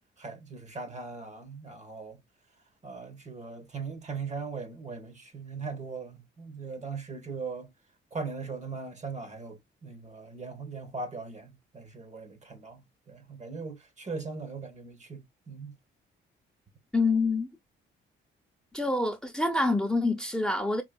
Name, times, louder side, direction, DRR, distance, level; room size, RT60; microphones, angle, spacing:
voice 1, 0.2-2.2 2.8-7.7 8.1-15.8, right 4 dB, 35° right, 1.3 m, -39 dB
voice 2, 16.9-17.5 18.7-20.8, left 2 dB, 5° left, 0.8 m, -26 dB
4.8 x 3.2 x 2.2 m
cardioid pair, 90°, 20 cm